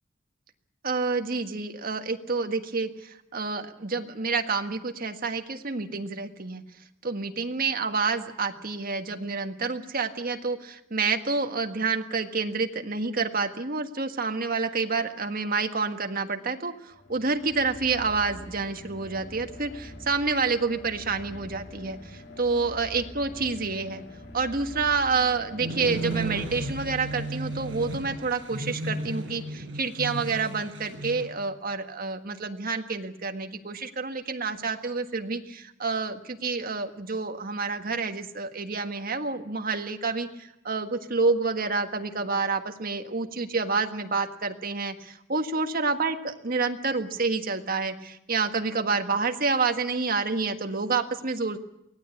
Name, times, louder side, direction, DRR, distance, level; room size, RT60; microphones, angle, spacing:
voice 1, 0.8-6.6 7.0-24.0 24.3-51.6, right 4 dB, 45° right, 6 dB, 1.6 m, -28 dB
sound 1, 16.9-28.8, left 1 dB, 55° left, 3.1 m, -44 dB
sound 2, 25.6-31.3, right 2 dB, 65° right, 7.1 m, -34 dB
23.5 x 17.0 x 8.5 m, 0.83 s
head